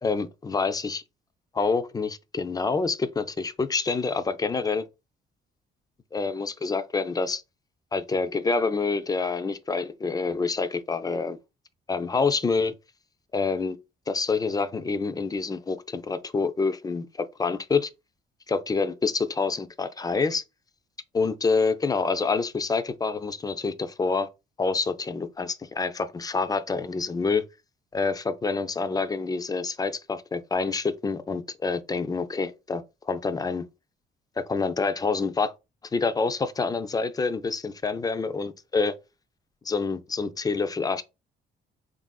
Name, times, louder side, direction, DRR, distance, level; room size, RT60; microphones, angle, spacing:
voice 1, 0.0-1.0 1.5-4.9 6.1-7.4 7.9-11.4 11.9-12.7 13.3-13.8 14.1-17.9 18.5-20.4 21.1-24.3 24.6-27.5 27.9-33.7 34.4-35.5 35.9-38.9 39.6-41.0, left 4 dB, 20° left, 0.3 m, -27 dB
3.3 x 2.4 x 2.2 m
cardioid pair, 90°, 20 cm